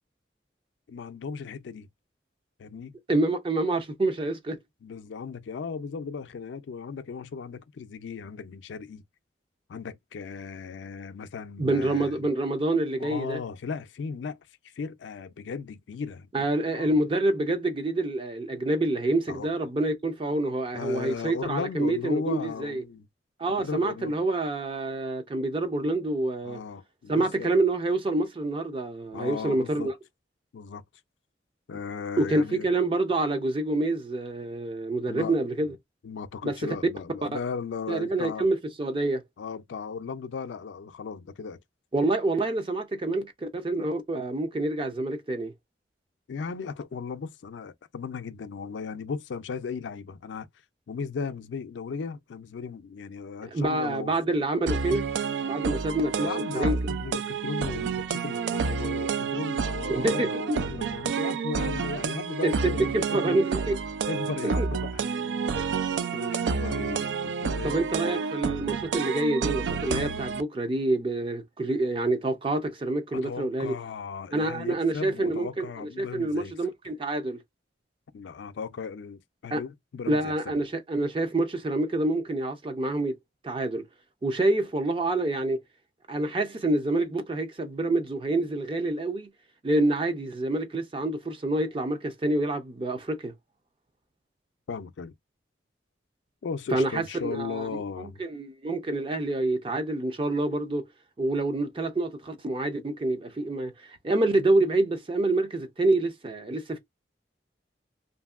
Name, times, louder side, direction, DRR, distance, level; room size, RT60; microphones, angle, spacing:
voice 1, 0.9-1.9 2.6-3.0 4.8-9.0 9.7-12.3 13.0-14.4 14.6-16.5 16.7-16.9 19.3-19.5 20.7-23.1 23.5-24.2 26.4-27.5 29.1-29.9 30.5-30.8 31.7-32.7 35.1-35.4 35.6-35.7 36.0-38.5 39.4-41.6 46.3-50.5 50.9-54.1 56.2-56.7 57.0-63.5 64.1-65.1 66.1-67.8 73.1-76.5 78.1-80.3 94.7-95.1 96.4-98.2, left 5 dB, 80° left, 0.4 m, -36 dB
voice 2, 3.1-4.6 11.6-13.4 16.3-22.8 23.4-26.6 27.1-29.9 32.2-35.7 36.4-36.7 37.9-39.2 41.9-45.5 53.5-55.1 55.4-56.8 59.9-60.6 62.4-62.5 62.9-63.8 64.4-64.7 67.6-73.8 74.3-77.4 79.5-79.6 80.1-83.2 83.4-83.8 84.2-85.6 86.1-89.3 89.6-93.3 96.7-97.7 98.0-100.9 101.2-103.7 104.0-106.8, right 2 dB, 30° right, 0.5 m, -27 dB
sound 1, 54.7-70.4, right 5 dB, 80° right, 0.4 m, -29 dB
2.8 x 2.6 x 2.3 m
head